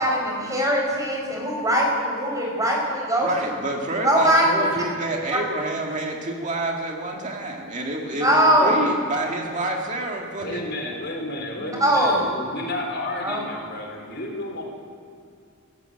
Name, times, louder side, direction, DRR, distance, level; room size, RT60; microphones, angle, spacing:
voice 1, 0.0-3.5 4.0-4.5 8.2-8.8 11.6-12.2 13.2-13.4, equal, 15° right, -1 dB, 5.3 m, -21 dB
voice 2, 3.2-10.6, right 2 dB, 35° right, 0 dB, 2.2 m, -28 dB
voice 3, 10.4-14.6, left 1 dB, 50° left, 1 dB, 4.1 m, -32 dB
23.5 x 16.5 x 8.1 m, 2.5 s
head